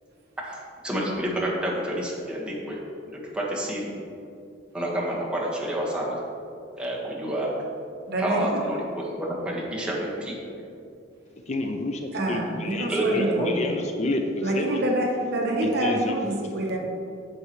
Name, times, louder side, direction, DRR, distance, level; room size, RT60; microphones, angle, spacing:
voice 1, 0.4-3.9 4.7-6.2 6.8-7.5 8.2-10.4 12.9-13.5, right 1 dB, 5° right, -5 dB, 1.5 m, -29 dB
voice 2, 8.1-8.6 12.1-13.7 14.4-16.8, right 1 dB, 55° right, -1 dB, 1.2 m, -27 dB
voice 3, 11.5-14.2 14.5-14.8 15.8-16.1, left 2 dB, 35° left, 4 dB, 0.5 m, -30 dB
9.6 x 6.9 x 3.2 m, 2.5 s
head